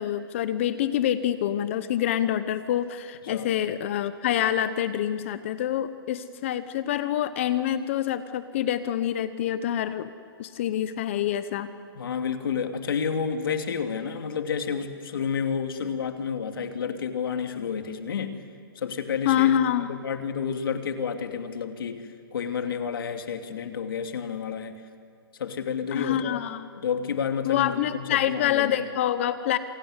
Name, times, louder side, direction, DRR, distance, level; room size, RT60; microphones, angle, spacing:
voice 1, 0.0-10.1 10.4-11.7 19.2-19.9 25.9-26.7 27.4-29.6, left 11 dB, 30° left, 13 dB, 0.8 m, -26 dB
voice 2, 12.0-18.4 18.7-24.8 25.4-26.4 26.8-28.7, left 6 dB, 65° left, 6 dB, 2.6 m, -30 dB
27.5 x 21.5 x 9.7 m, 2.2 s
hypercardioid pair, 170°, 13 cm